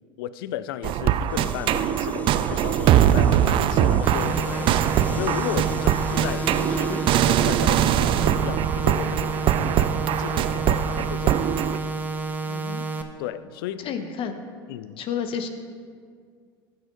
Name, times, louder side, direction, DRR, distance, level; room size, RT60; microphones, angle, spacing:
voice 1, 0.2-4.8 5.1-11.5 13.2-13.9 14.7-15.0, left 12 dB, 75° left, 16 dB, 0.4 m, -34 dB
sound 1, 0.8-11.8, right 11 dB, 45° right, 0.4 m, -22 dB
sound 2, 1.2-8.2, left 2 dB, 10° left, 0.6 m, -37 dB
sound 3, 4.0-13.0, right 3 dB, 15° right, 0.8 m, -30 dB
voice 2, 12.4-12.8 13.8-14.4 15.0-15.5, left 7 dB, 45° left, 8 dB, 1.0 m, -31 dB
14.5 x 6.5 x 3.9 m, 2.1 s
hypercardioid pair, 85°, 12 cm